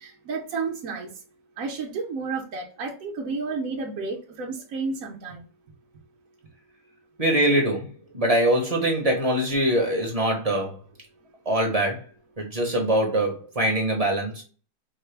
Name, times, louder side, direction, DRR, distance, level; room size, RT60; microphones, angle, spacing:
voice 1, 0.0-1.1 1.6-5.4, right 4 dB, 60° right, 1.1 m, -31 dB
voice 2, 7.2-10.8 11.4-12.0 12.4-14.4, right 1 dB, 30° right, 0.8 m, -23 dB
4.9 x 2.2 x 3.2 m
omnidirectional pair, 1.8 m